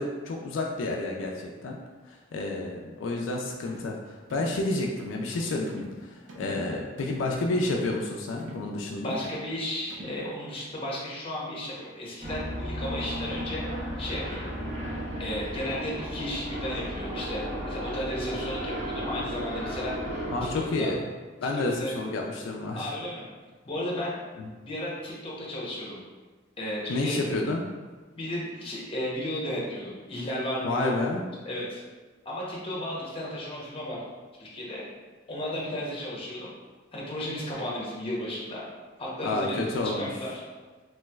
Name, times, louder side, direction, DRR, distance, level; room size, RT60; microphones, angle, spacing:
voice 1, 0.0-1.8 2.1-9.2 20.3-21.0 21.4-23.0 24.4-24.5 26.9-27.6 30.6-31.2 39.2-40.1, left 2 dB, 80° left, 0 dB, 0.3 m, -30 dB
sound 1, 3.7-3.9 4.3-4.6 5.0-5.2 5.7-6.0 6.3-6.6 7.0-7.3 7.7-8.0 8.4-8.7 9.1-9.4 9.9-10.2, equal, 85° right, 0.6 m, -43 dB
voice 2, 9.0-13.6 14.0-14.5 15.2-19.9 20.4-20.9 21.4-21.9 22.7-23.3 23.6-24.2 24.6-26.0 26.6-27.2 28.2-30.9 31.5-31.8 32.2-34.0 34.4-34.9 35.3-36.5 36.9-38.7 39.0-40.4, left 1 dB, 30° left, -5 dB, 0.7 m, -34 dB
sound 2, 12.2-20.6, equal, 40° right, 0.8 m, -34 dB
3.1 x 3.0 x 2.2 m, 1.3 s
head